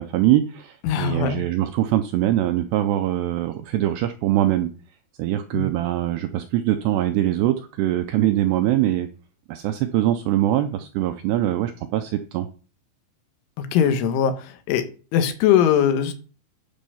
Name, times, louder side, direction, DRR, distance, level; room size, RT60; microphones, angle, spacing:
voice 1, 0.0-4.7 5.2-9.1 9.5-12.5, right 13 dB, 85° right, 8 dB, 2.4 m, -22 dB
voice 2, 0.8-1.4 5.5-5.7 13.6-14.8 15.1-16.1, left 8 dB, 80° left, 8 dB, 3.5 m, -20 dB
12.0 x 5.5 x 5.5 m, 0.38 s
omnidirectional pair, 5.6 m